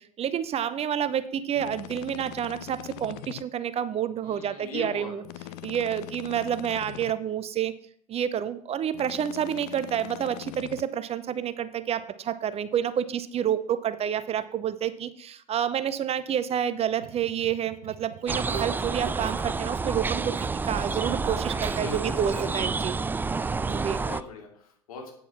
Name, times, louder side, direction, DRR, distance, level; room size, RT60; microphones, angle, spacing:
voice 1, 0.0-5.2 5.6-7.7 8.1-20.3 20.6-23.0 23.6-24.0, right 9 dB, 35° right, 14 dB, 0.7 m, -29 dB
sound 1, 1.6-3.4 5.2-7.1 8.9-10.8, left 17 dB, 55° left, 0.6 m, -41 dB
voice 2, 4.2-5.7 21.5-23.1 23.5-25.1, left 4 dB, 75° left, 1 dB, 2.9 m, -42 dB
sound 2, 17.0-19.7 19.9-22.7, right 8 dB, 75° right, 1.1 m, -43 dB
sound 3, 18.3-24.2, right 4 dB, 10° right, 0.3 m, -29 dB
9.1 x 7.0 x 5.9 m, 0.63 s
hypercardioid pair, 85°, 19 cm